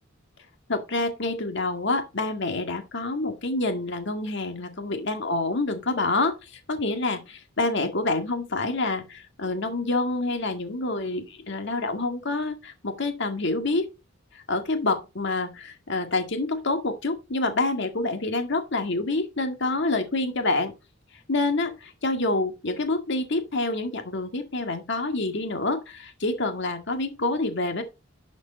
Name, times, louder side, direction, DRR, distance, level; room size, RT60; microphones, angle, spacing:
voice 1, 0.7-13.9 14.3-20.7 21.3-27.8, left 2 dB, 60° left, 1.9 m, -27 dB
11.5 x 5.2 x 4.1 m
head